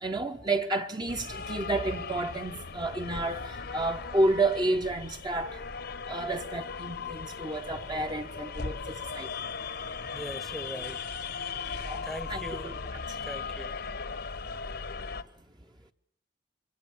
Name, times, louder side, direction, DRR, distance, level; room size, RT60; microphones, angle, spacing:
voice 1, 0.0-5.6 6.1-9.3 11.7-12.8, right 2 dB, 25° right, 1.1 m, -31 dB
sound 1, 1.1-15.2, left 5 dB, 60° left, 1.1 m, -38 dB
voice 2, 10.1-11.0 12.0-12.9 13.2-13.7, equal, ahead, 1.0 m, -40 dB
26.0 x 24.0 x 7.3 m
head